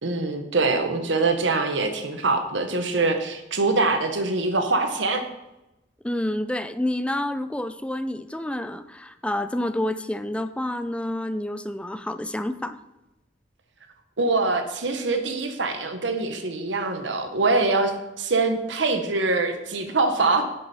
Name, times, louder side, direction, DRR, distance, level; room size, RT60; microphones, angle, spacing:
voice 1, 0.0-5.2 14.2-20.4, right 3 dB, 85° right, 7 dB, 1.1 m, -24 dB
voice 2, 6.0-12.8, left 1 dB, 5° left, 10 dB, 0.5 m, -28 dB
11.0 x 7.8 x 4.2 m, 0.95 s
head